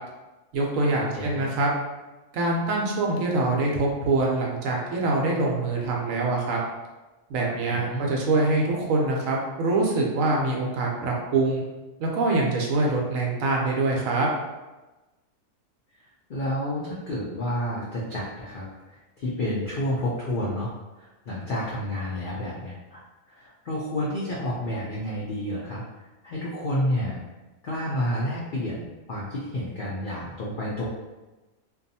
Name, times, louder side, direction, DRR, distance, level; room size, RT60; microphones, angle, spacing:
voice 1, 0.5-1.7 2.3-6.6 7.3-11.6 12.0-14.3, right 2 dB, 75° right, -1 dB, 0.9 m, -24 dB
voice 2, 1.1-1.4 7.7-8.0 16.3-23.0 23.3-27.2 27.6-30.9, left 1 dB, 75° left, -6 dB, 0.4 m, -30 dB
2.6 x 2.3 x 2.6 m, 1.1 s
omnidirectional pair, 1.5 m